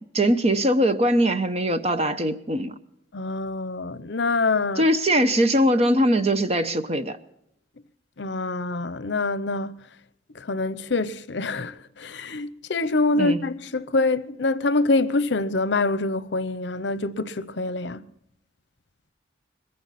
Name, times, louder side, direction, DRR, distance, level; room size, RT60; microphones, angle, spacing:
voice 1, 0.1-2.8 4.8-7.2 13.2-13.4, equal, 35° right, 0.9 m, -21 dB
voice 2, 3.1-4.9 8.2-9.8 10.3-18.1, left 3 dB, 70° left, 0.8 m, -25 dB
21.0 x 15.5 x 4.2 m
head